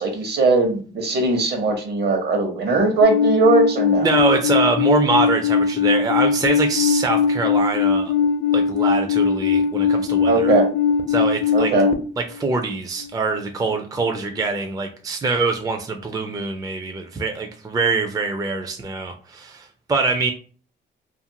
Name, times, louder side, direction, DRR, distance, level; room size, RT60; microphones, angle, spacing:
voice 1, 0.0-4.1 10.2-10.7 11.5-11.9, right 3 dB, 55° right, 4 dB, 0.9 m, -19 dB
Alarm, 3.0-11.9, left 6 dB, 50° left, 0.5 m, -20 dB
voice 2, 4.0-8.1 8.5-10.5 11.1-11.7 12.3-20.3, right 4 dB, 20° right, 4 dB, 0.4 m, -24 dB
2.5 x 2.4 x 2.8 m, 0.39 s
cardioid pair, 90°, 20 cm